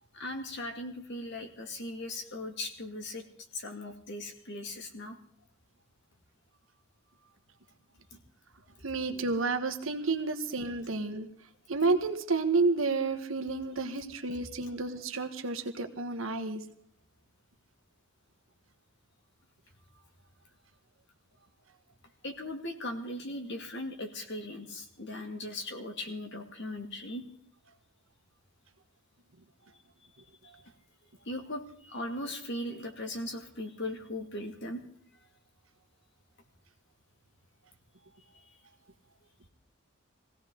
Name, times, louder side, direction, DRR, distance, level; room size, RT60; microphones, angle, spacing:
voice 1, 0.1-3.2 3.5-5.2 22.2-27.2 31.3-34.8 38.3-38.5, left 1 dB, 60° left, 4 dB, 2.4 m, -38 dB
voice 2, 8.8-11.3 11.7-16.6, right 3 dB, 70° right, 7 dB, 1.5 m, -30 dB
22.0 x 16.5 x 3.9 m, 0.62 s
head